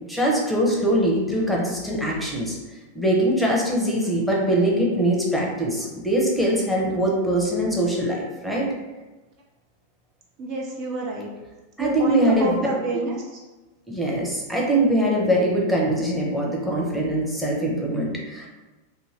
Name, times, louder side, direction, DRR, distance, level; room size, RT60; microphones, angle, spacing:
voice 1, 0.1-2.6 2.9-8.7 11.8-12.6 12.9-13.0 13.9-18.5, right 1 dB, ahead, -3 dB, 0.7 m, -22 dB
voice 2, 10.4-11.3 11.8-13.2, right 2 dB, 40° right, -1 dB, 0.5 m, -28 dB
2.6 x 2.4 x 3.1 m, 1.2 s
figure-of-eight pair, 90°, 0 cm